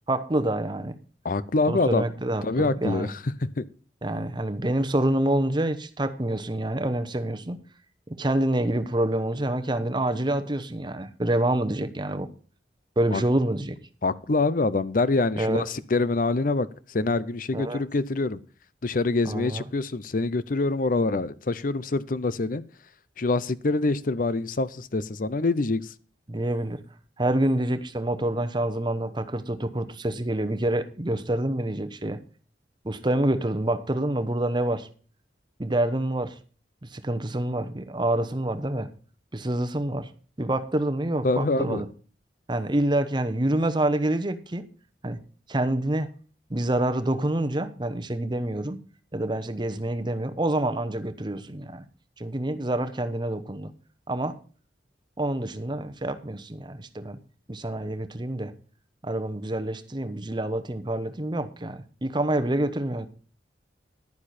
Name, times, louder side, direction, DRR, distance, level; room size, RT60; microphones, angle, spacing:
voice 1, 0.1-1.0 1.7-3.1 4.0-7.6 8.1-12.3 13.0-13.8 15.4-15.7 17.5-17.8 19.2-19.6 26.3-26.8 27.2-32.2 32.8-34.9 35.6-36.4 36.8-38.9 39.3-40.1 40.4-41.9 42.5-44.7 45.0-45.2 45.5-46.1 46.5-48.8 49.1-51.8 52.2-53.7 54.1-54.4 55.2-57.2 57.5-58.5 59.0-63.1, right 1 dB, 25° right, 0.9 m, -27 dB
voice 2, 1.2-2.0 2.4-3.2 3.6-3.7 13.1-13.2 14.0-18.4 18.8-22.6 23.2-25.9 41.2-41.8, left 3 dB, 50° left, 0.6 m, -25 dB
11.0 x 9.8 x 4.2 m
head